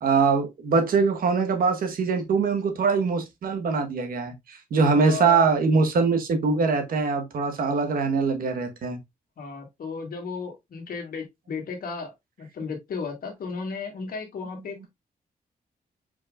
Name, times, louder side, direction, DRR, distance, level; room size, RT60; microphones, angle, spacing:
voice 1, 0.0-9.0, right 4 dB, 75° right, 1.1 m, -23 dB
voice 2, 4.9-5.5 9.4-12.1 12.4-14.9, left 4 dB, 75° left, 1.8 m, -34 dB
4.6 x 4.5 x 2.4 m
cardioid pair, 100°, 15 cm